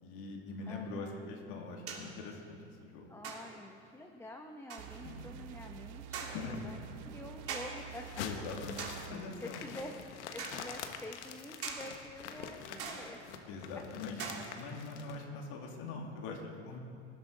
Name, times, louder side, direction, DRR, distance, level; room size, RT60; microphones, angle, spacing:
voice 1, 0.0-3.1 5.0-5.2 6.2-6.6 8.2-8.8 9.1-9.6 12.7-12.8 13.5-14.2 14.6-16.8, left 4 dB, 65° left, 1 dB, 2.7 m, -43 dB
sound 1, 0.6-0.7 1.9-2.2 3.2-3.7 4.7-5.0 6.1-6.6 7.5-7.9 8.8-9.2 10.4-10.7 11.6-12.0 12.8-13.3 14.2-14.8, right 5 dB, 40° right, 3.0 m, -43 dB
voice 2, 0.7-1.3 3.1-8.4 9.4-10.0 10.3-13.2 13.7-13.8 15.6-15.8, left 1 dB, 10° left, 3 dB, 1.0 m, -48 dB
sound 2, 4.8-9.2, right 9 dB, 55° right, 1.1 m, -48 dB
sound 3, 7.9-15.2, left 7 dB, 85° left, 1.3 m, -46 dB
19.5 x 12.5 x 4.0 m, 2.4 s
hypercardioid pair, 100°, 34 cm